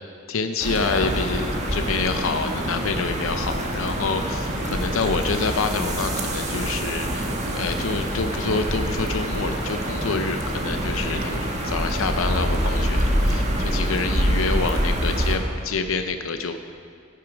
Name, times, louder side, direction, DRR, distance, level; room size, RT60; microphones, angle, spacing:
voice 1, 0.3-16.6, left 4 dB, 75° left, 7 dB, 0.6 m, -27 dB
sound 1, 0.6-15.4, right 1 dB, 35° right, 1.6 m, -25 dB
15.0 x 9.4 x 5.1 m, 2.5 s
head